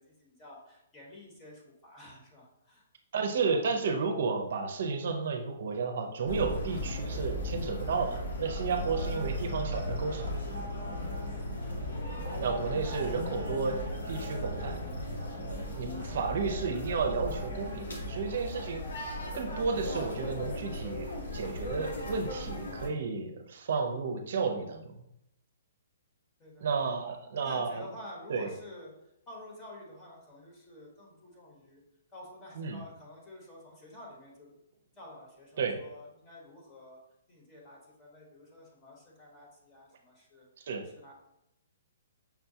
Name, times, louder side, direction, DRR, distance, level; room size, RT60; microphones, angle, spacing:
voice 1, 0.0-2.9 26.4-26.7 27.3-31.8 32.1-34.6 35.0-37.0 37.3-40.7 40.9-41.1, left 1 dB, 20° left, -3 dB, 1.1 m, -50 dB
voice 2, 3.1-10.3 12.4-13.8 14.1-14.7 15.8-25.0 26.6-27.8 28.3-28.5 32.6-32.8 35.6-35.7 40.6-40.8, right 5 dB, 60° right, 4 dB, 0.5 m, -32 dB
sound 1, 6.3-22.9, equal, 80° left, 0.9 m, -36 dB
5.8 x 2.2 x 2.7 m, 0.83 s
hypercardioid pair, 145°, 0 cm